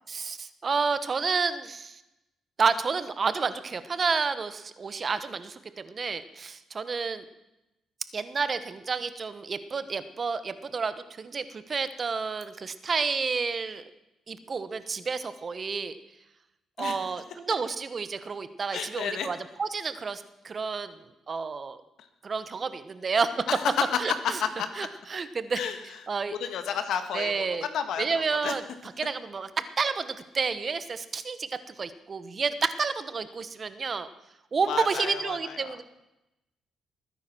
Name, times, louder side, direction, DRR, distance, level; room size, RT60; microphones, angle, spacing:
voice 1, 0.1-2.0 2.6-7.2 8.1-13.8 14.3-16.0 16.8-20.9 21.3-21.8 22.2-23.3 24.0-24.4 24.8-25.6 26.1-26.4 27.1-27.6 28.0-28.6 29.0-29.5 29.8-34.1 34.5-35.8, right 5 dB, 40° right, 12 dB, 1.1 m, -30 dB
voice 2, 18.7-19.3 23.5-24.7 25.5-25.8 26.3-28.5 34.7-35.7, left 8 dB, 75° left, 8 dB, 1.8 m, -31 dB
21.0 x 9.7 x 6.2 m, 0.93 s
cardioid pair, 90°, 0 cm